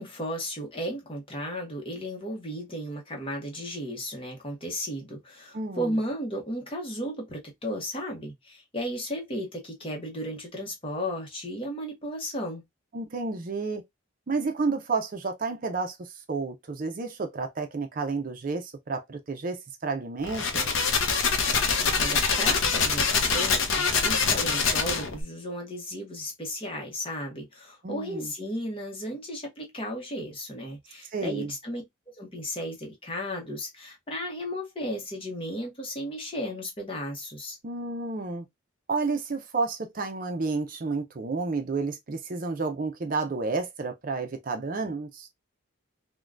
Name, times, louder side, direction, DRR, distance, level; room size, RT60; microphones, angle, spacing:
voice 1, 0.0-12.6 21.9-31.8 32.2-37.6, equal, 25° left, 0.8 m, -34 dB
voice 2, 5.5-5.9 12.9-13.8 14.3-20.9 27.8-28.3 31.1-31.5 37.6-38.4 38.9-45.3, right 4 dB, 45° right, 0.5 m, -31 dB
sound 1, 20.2-25.2, left 5 dB, 85° left, 0.7 m, -24 dB
3.6 x 2.2 x 2.4 m
head